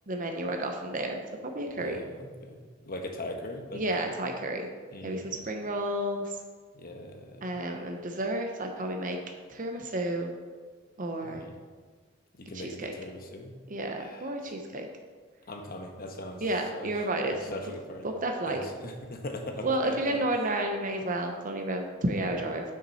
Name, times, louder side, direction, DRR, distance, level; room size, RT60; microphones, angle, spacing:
voice 1, 0.1-2.0 3.7-4.7 5.0-6.3 7.4-9.2 9.5-10.3 11.0-11.4 12.5-12.9 13.7-14.9 16.4-17.5 18.0-18.6 19.6-22.6, right 1 dB, 45° right, 3 dB, 0.8 m, -31 dB
voice 2, 1.8-4.3 4.9-5.4 6.7-7.5 11.2-11.5 12.4-13.5 14.0-14.4 15.5-16.5 16.7-16.9 17.2-18.1 18.5-20.2, left 1 dB, 50° left, 4 dB, 1.1 m, -40 dB
9.2 x 6.2 x 4.2 m, 1.5 s
head